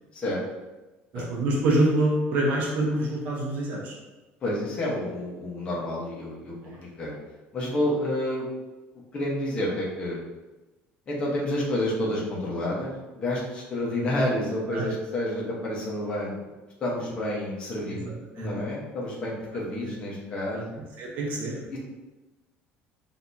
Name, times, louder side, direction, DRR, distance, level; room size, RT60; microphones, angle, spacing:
voice 1, 1.1-3.9 6.6-6.8 14.7-14.8 18.0-18.5 19.8-20.0 20.5-20.6 21.0-21.6, right 1 dB, 45° right, -3 dB, 0.9 m, -26 dB
voice 2, 4.4-6.5 6.8-7.1 7.5-8.5 9.1-10.2 11.1-16.3 16.8-20.8 21.7-21.8, left 1 dB, 25° left, -4 dB, 1.1 m, -29 dB
6.5 x 2.9 x 2.7 m, 1.1 s
cardioid pair, 175°, 4 cm